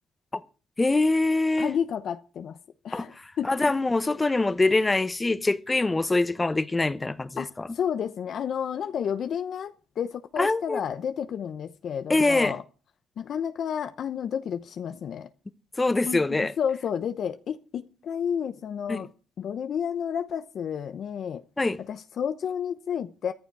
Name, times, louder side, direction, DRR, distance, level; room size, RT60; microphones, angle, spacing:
voice 1, 0.8-1.7 2.9-3.1 3.4-7.7 10.4-10.8 12.1-12.5 15.8-16.5 18.9-19.0 21.6-21.8, left 2 dB, 20° left, 1.0 m, -24 dB
voice 2, 1.6-2.6 2.8-3.5 7.4-12.6 13.2-15.3 16.1-19.1 19.4-21.4 21.8-23.3, left 8 dB, 60° left, 0.9 m, -31 dB
14.0 x 12.5 x 4.8 m
cardioid pair, 90°, 0 cm